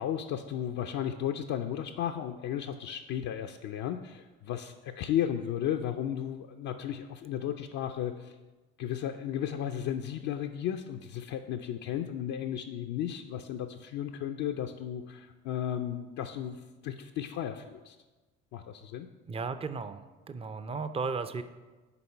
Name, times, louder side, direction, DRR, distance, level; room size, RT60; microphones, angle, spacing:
voice 1, 0.0-8.3 8.8-18.0 18.5-19.1, left 10 dB, 60° left, 5 dB, 0.5 m, -34 dB
voice 2, 19.3-20.0 20.3-21.4, right 4 dB, 20° right, 10 dB, 0.5 m, -34 dB
7.0 x 4.3 x 5.3 m, 1.2 s
hypercardioid pair, 55°, 32 cm